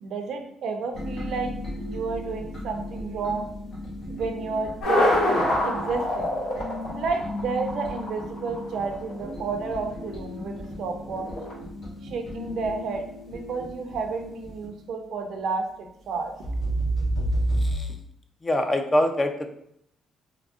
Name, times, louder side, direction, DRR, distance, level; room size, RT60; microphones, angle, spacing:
voice 1, 0.0-3.5 4.1-5.1 5.6-6.3 6.9-11.3 12.0-16.3, right 4 dB, 70° right, 4 dB, 0.5 m, -31 dB
sound 1, 0.9-14.7 16.4-17.7, right 1 dB, 50° left, 1.3 m, -33 dB
sound 2, 4.8-9.7 11.0-11.5, left 1 dB, 85° left, 1.3 m, -25 dB
voice 2, 17.6-17.9 18.4-19.5, left 1 dB, 25° left, 6 dB, 0.4 m, -24 dB
3.6 x 2.0 x 3.5 m, 0.72 s
cardioid pair, 90°, 0 cm